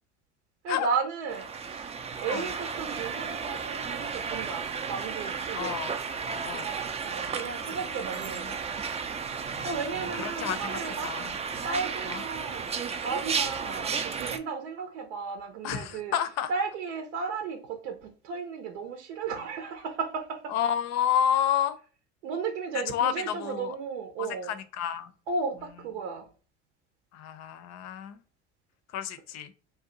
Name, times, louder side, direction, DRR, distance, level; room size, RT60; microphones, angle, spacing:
voice 1, 0.6-1.9 2.2-5.7 7.0-8.6 9.5-11.1 11.6-12.7 13.0-16.1 16.5-20.5 22.2-24.5 25.3-26.3, right 5 dB, 80° right, 0.7 m, -34 dB
sound 1, 1.3-14.4, right 5 dB, 20° right, 0.4 m, -33 dB
voice 2, 5.5-5.9 6.3-6.7 7.7-7.8 8.3-8.5 9.5-11.4 12.1-12.2 15.6-16.5 20.5-21.8 22.9-23.7 24.2-25.1 27.1-28.2 28.9-29.5, left 9 dB, 50° left, 0.6 m, -30 dB
2.7 x 2.2 x 3.8 m
hypercardioid pair, 75°, 34 cm